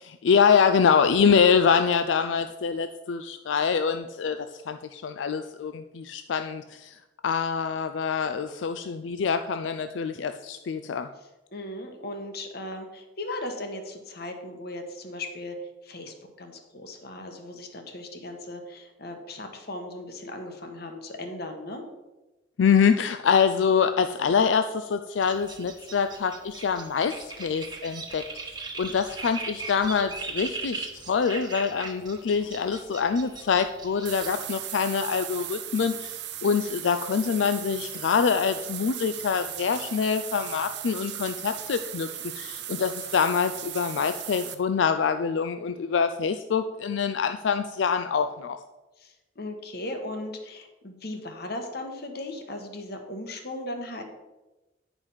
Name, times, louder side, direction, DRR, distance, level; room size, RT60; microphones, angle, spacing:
voice 1, 0.2-7.0 7.2-11.1 22.6-28.2 28.5-42.1 42.4-48.6, left 6 dB, 85° left, 9 dB, 0.4 m, -25 dB
voice 2, 11.5-15.5 15.8-21.8 49.0-54.0, left 1 dB, 60° left, 5 dB, 1.2 m, -37 dB
sound 1, 25.2-34.4, right 4 dB, 25° right, 1.0 m, -39 dB
sound 2, 34.0-44.5, right 12 dB, 65° right, 0.7 m, -37 dB
9.8 x 4.9 x 5.6 m, 1.1 s
head